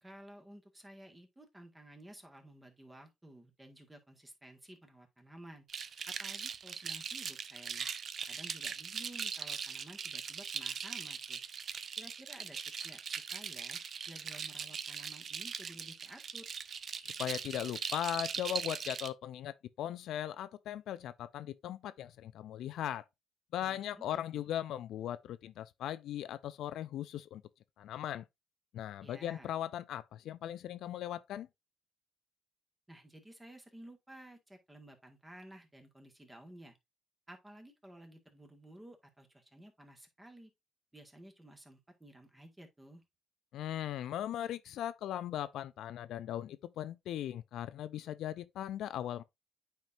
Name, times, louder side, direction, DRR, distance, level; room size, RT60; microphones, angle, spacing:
voice 1, 0.0-5.7 6.1-7.9 8.3-11.4 12.0-13.8 14.1-16.5 23.6-24.5 29.0-29.5 32.9-36.8 37.3-40.5 40.9-43.0, right 1 dB, 15° right, 1.8 m, -54 dB
sound 1, 5.7-19.1, right 6 dB, 55° right, 0.6 m, -40 dB
voice 2, 17.0-23.0 23.5-27.4 27.8-28.3 28.7-31.5 43.5-49.2, left 11 dB, 80° left, 0.4 m, -38 dB
9.1 x 4.4 x 2.6 m
cardioid pair, 90°, 0 cm